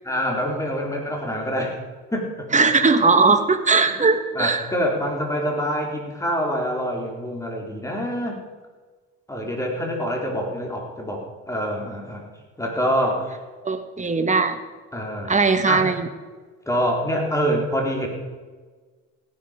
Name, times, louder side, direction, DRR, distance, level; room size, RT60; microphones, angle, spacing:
voice 1, 0.0-1.7 2.1-2.5 4.3-8.4 9.3-12.2 12.6-13.4 14.9-15.4 15.7-15.9 16.7-18.1, equal, 10° left, 0 dB, 3.9 m, -25 dB
voice 2, 2.5-4.7 13.6-14.6 15.3-16.1, right 4 dB, 25° right, 8 dB, 1.5 m, -19 dB
16.5 x 10.5 x 5.2 m, 1.4 s
cardioid pair, 90°, 30 cm